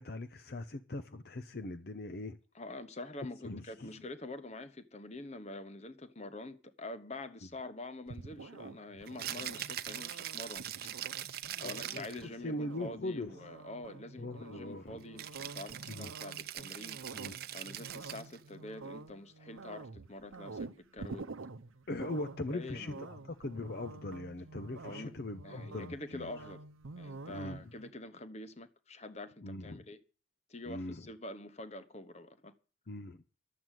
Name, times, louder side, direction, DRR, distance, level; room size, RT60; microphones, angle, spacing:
voice 1, 0.0-2.4 3.4-4.0 11.6-13.3 14.2-15.0 15.9-16.1 17.1-17.4 21.9-26.5 27.3-27.7 29.4-29.8 30.7-31.0 32.9-33.2, left 2 dB, 50° left, 0.7 m, -41 dB
voice 2, 2.5-10.6 11.6-17.0 17.5-21.3 22.5-23.1 24.8-25.2 25.4-26.6 27.0-30.0 30.5-32.5, left 2 dB, 35° left, 1.0 m, -46 dB
sound 1, 8.1-27.9, right 3 dB, 85° right, 0.7 m, -49 dB
Rattle (instrument), 9.1-12.2 15.2-18.4, right 11 dB, 50° right, 0.7 m, -42 dB
12.0 x 7.8 x 9.1 m
head